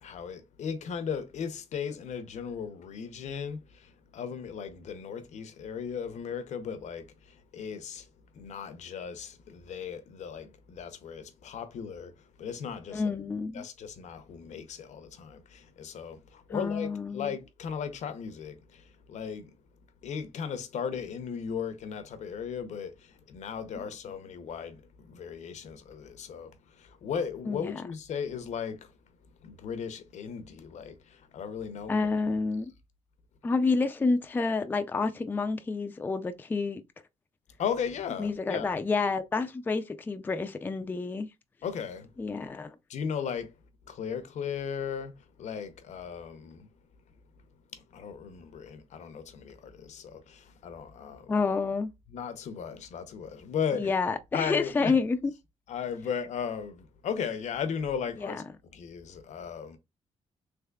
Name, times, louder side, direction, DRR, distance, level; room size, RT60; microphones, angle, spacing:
voice 1, 0.0-8.1 8.3-12.1 12.4-13.1 13.5-19.5 20.0-28.9 29.4-32.1 37.6-38.7 41.6-42.1 42.9-43.5 43.9-45.1 45.4-46.7 47.7-51.4 52.1-53.9 54.3-55.0 55.7-58.4 58.7-59.8, left 7 dB, 70° left, 0.6 m, -36 dB
voice 2, 12.9-13.6 16.5-17.3 23.8-23.9 27.5-27.8 31.9-32.7 33.4-36.8 38.2-41.3 42.2-42.8 51.3-51.9 53.7-55.3 58.2-58.4, left 4 dB, 15° left, 0.3 m, -29 dB
3.5 x 3.2 x 2.2 m
cardioid pair, 135°, 12 cm